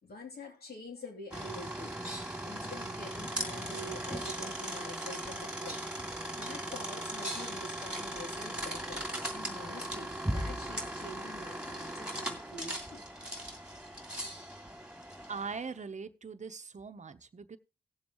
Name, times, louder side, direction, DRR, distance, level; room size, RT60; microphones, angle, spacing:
voice 1, 0.0-1.9 2.4-5.8 6.3-9.0 9.3-13.0, left 2 dB, 90° left, 2.9 m, -47 dB
sound 1, 1.3-15.7, right 1 dB, 5° right, 2.5 m, -38 dB
voice 2, 15.3-17.6, right 5 dB, 50° right, 0.8 m, -41 dB
18.5 x 7.1 x 3.0 m
cardioid pair, 65°, 16 cm